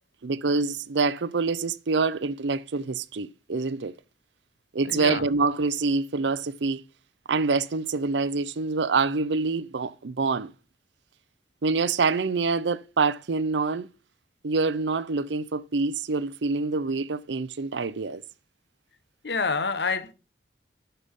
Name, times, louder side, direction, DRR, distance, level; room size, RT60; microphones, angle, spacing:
voice 1, 0.2-3.9 4.7-6.8 7.3-10.5 11.6-13.9 14.4-18.2, right 4 dB, 85° right, 0.6 m, -26 dB
voice 2, 4.9-5.2 19.2-20.1, left 4 dB, 70° left, 1.0 m, -27 dB
9.9 x 6.8 x 3.6 m
head